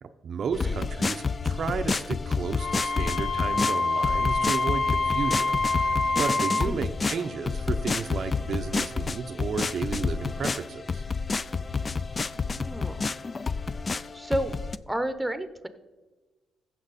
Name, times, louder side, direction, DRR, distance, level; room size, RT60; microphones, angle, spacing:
voice 1, 0.0-11.0, right 6 dB, 55° right, 7 dB, 0.6 m, -33 dB
sound 1, 0.5-14.8, left 4 dB, 30° left, 0.3 m, -29 dB
Wind instrument woodwind instrument, 2.6-6.7, left 3 dB, 55° left, 1.4 m, -26 dB
voice 2, 12.3-13.1 14.1-14.6 14.9-15.7, right 1 dB, 5° right, 10 dB, 0.9 m, -31 dB
15.5 x 5.9 x 4.1 m, 1.2 s
cardioid pair, 90°, 0 cm